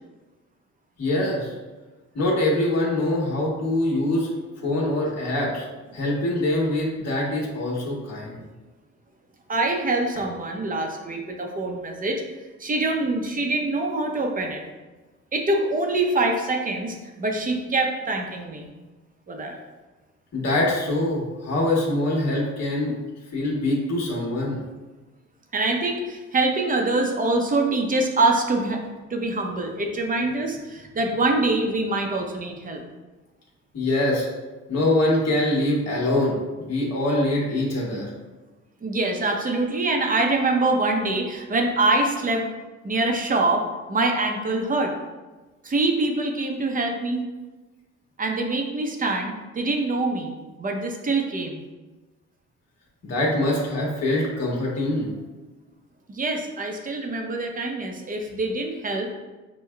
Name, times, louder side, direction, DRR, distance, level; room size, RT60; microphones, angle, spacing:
voice 1, 1.0-1.5 2.1-4.3 4.6-5.6 5.9-8.4 20.3-22.9 23.3-24.6 33.7-34.3 34.7-38.1 53.0-55.1, left 1 dB, 60° left, -3 dB, 1.3 m, -24 dB
voice 2, 9.5-12.2 12.6-14.6 15.3-18.7 19.3-19.6 25.5-28.8 29.1-32.8 38.8-42.5 42.8-43.6 43.9-44.9 45.6-47.3 48.2-50.3 50.6-51.6 56.1-59.1, right 2 dB, 30° right, 2 dB, 0.6 m, -24 dB
6.4 x 2.2 x 2.3 m, 1.2 s
cardioid pair, 90°, 30 cm